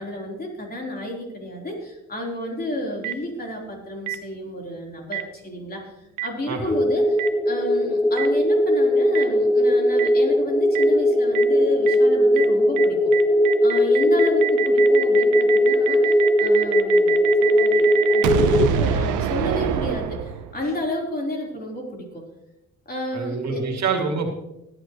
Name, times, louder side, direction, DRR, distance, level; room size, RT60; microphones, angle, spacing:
voice 1, 0.0-13.0 13.6-22.2 22.9-23.8, left 1 dB, 30° left, -1 dB, 4.0 m, -31 dB
Boom, 3.0-3.1 4.1-4.2 5.1-5.2 6.2-6.3 7.2-7.3 8.2-8.3 9.1-9.2 10.0-10.1 10.7-10.8 11.3-11.4 11.9-12.0 12.4-12.5 12.8-12.9 13.1-20.7, right 10 dB, 90° right, 1.0 m, -25 dB
sound 1, 6.7-18.7, left 1 dB, 10° left, 0.7 m, -19 dB
voice 2, 23.1-24.3, right 4 dB, 60° right, 2 dB, 2.6 m, -26 dB
19.0 x 9.5 x 3.2 m, 0.89 s
cardioid pair, 90°, 30 cm